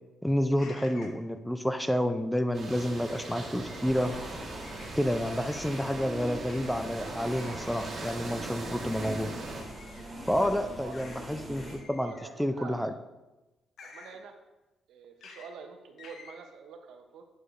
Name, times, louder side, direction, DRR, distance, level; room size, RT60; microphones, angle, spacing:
voice 1, 0.2-4.1 5.0-9.3 10.3-12.1 12.4-12.9, equal, 5° left, 9 dB, 0.4 m, -29 dB
sound 1, 0.6-1.2 3.1-3.8 4.6-4.9 5.5-5.9 6.4-6.7 7.3-7.9 8.9-9.1 9.7-10.1 10.9-11.2 11.5-12.4 13.8-14.2 15.2-15.5 16.0-16.3, left 4 dB, 65° left, 0.9 m, -51 dB
sound 2, 2.5-9.6, right 2 dB, 45° right, 1.5 m, -40 dB
sound 3, 3.8-11.8, right 1 dB, 15° right, 2.1 m, -43 dB
voice 2, 11.8-12.9 13.8-14.4 14.9-17.2, right 6 dB, 80° right, 5 dB, 0.7 m, -46 dB
8.2 x 4.8 x 2.6 m, 1.1 s
cardioid pair, 90°, 0 cm